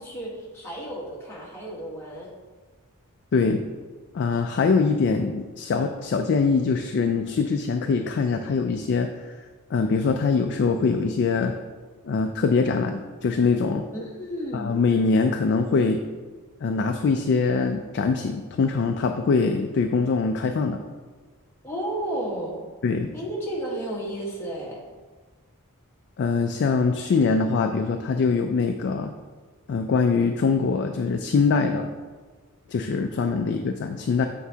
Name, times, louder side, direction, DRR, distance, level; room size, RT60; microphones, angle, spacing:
voice 1, 0.0-2.3 13.9-14.7 21.6-22.6 23.1-24.8 33.2-33.3, right 1 dB, 10° left, -5 dB, 1.3 m, -32 dB
voice 2, 3.3-3.6 4.1-9.3 9.7-11.5 12.0-13.8 14.5-16.0 16.6-20.8 22.8-23.1 26.2-29.1 29.7-31.9 32.7-34.3, left 4 dB, 50° left, 5 dB, 0.3 m, -23 dB
8.0 x 4.5 x 2.8 m, 1.4 s
head